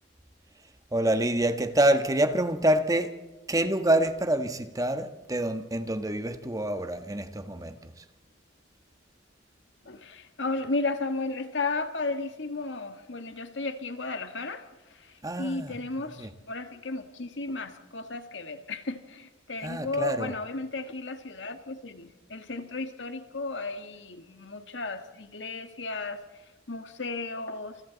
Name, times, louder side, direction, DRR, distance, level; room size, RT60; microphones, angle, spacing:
voice 1, 0.9-3.2 3.5-7.7 15.2-15.7 16.2-16.3 19.6-20.3, right 1 dB, 20° right, 1.5 m, -26 dB
voice 2, 9.9-27.8, left 3 dB, 70° left, 1.8 m, -34 dB
29.0 x 28.5 x 4.1 m
head